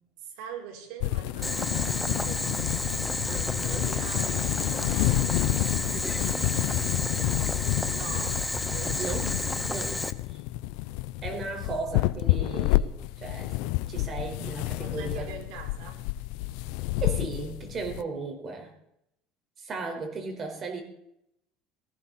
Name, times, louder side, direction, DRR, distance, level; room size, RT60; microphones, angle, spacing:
voice 1, 0.2-3.0 3.6-6.4 7.9-9.3 14.8-16.1, right 6 dB, 75° right, 3 dB, 4.3 m, -44 dB
sound 1, 1.0-18.0, left 17 dB, 75° left, 0.6 m, -29 dB
Boiling, 1.4-10.1, left 2 dB, 5° left, 0.8 m, -31 dB
voice 2, 3.2-3.9 6.2-6.5 9.0-9.3 9.7-10.0 11.2-13.5 13.9-15.3 17.0-18.7 19.6-20.8, right 3 dB, 35° right, 4 dB, 4.7 m, -36 dB
18.5 x 15.5 x 4.3 m, 0.77 s
cardioid pair, 130°, 0 cm